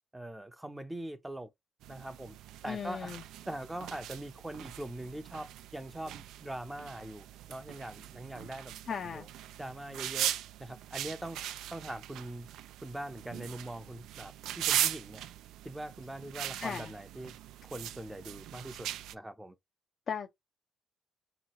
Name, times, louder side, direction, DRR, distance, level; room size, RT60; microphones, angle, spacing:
voice 1, 0.1-1.5 1.9-2.4 2.6-3.2 3.5-8.7 9.1-9.3 9.6-10.3 10.6-12.5 12.8-15.2 15.6-17.3 17.6-19.6, right 1 dB, 10° right, 0.6 m, -42 dB
sound 1, 1.8-19.1, right 12 dB, 85° right, 0.3 m, -39 dB
voice 2, 2.6-3.2 8.9-9.3 16.6-16.9 20.1-20.3, left 7 dB, 55° left, 0.6 m, -37 dB
3.7 x 2.9 x 2.9 m
cardioid pair, 90°, 0 cm